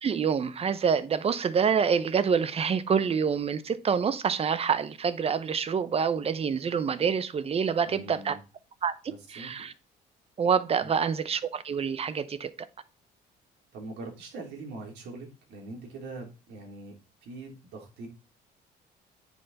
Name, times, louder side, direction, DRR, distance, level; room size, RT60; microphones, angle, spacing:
voice 1, 0.0-8.4 8.8-8.9 9.3-9.7 10.4-12.5, right 6 dB, 35° right, 0.8 m, -27 dB
voice 2, 7.9-8.4 9.1-9.5 10.8-10.9 13.7-16.9 17.2-18.1, right 3 dB, 80° right, 3.4 m, -42 dB
9.5 x 5.6 x 4.1 m
cardioid pair, 110°, 17 cm